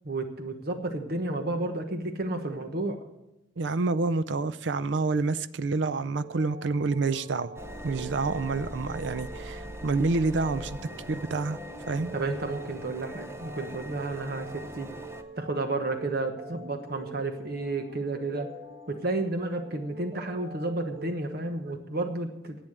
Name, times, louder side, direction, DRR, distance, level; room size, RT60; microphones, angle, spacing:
voice 1, 0.0-3.0 12.1-14.9 15.4-18.5 18.9-22.6, right 2 dB, 55° right, 1.2 m, -31 dB
voice 2, 3.6-7.6 7.8-10.8 11.1-11.6 11.9-12.1, right 3 dB, 70° right, 0.5 m, -28 dB
sound 1, 6.2-21.1, right 2 dB, 30° right, 1.5 m, -45 dB
sound 2, 7.6-15.2, equal, 15° right, 0.7 m, -42 dB
11.0 x 8.5 x 9.3 m
head